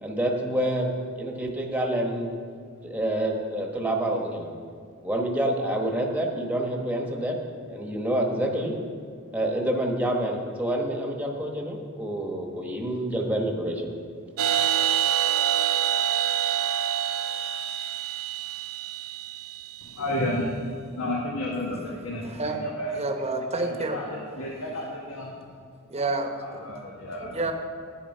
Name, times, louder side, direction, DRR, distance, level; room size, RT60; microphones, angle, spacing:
voice 1, 0.0-2.3 2.8-4.5 5.0-7.4 7.7-8.7 9.3-13.9, right 1 dB, 5° right, 1 dB, 1.1 m, -27 dB
sound 1, 14.4-19.9, right 10 dB, 80° right, 0.7 m, -26 dB
voice 2, 19.8-20.7 21.0-23.0 23.5-25.4 26.4-27.4, left 1 dB, 80° left, -3 dB, 1.3 m, -32 dB
voice 3, 22.2-22.6 22.9-24.0 25.9-26.7 27.3-27.5, right 3 dB, 30° right, 5 dB, 1.0 m, -29 dB
9.7 x 9.2 x 5.4 m, 2.3 s
head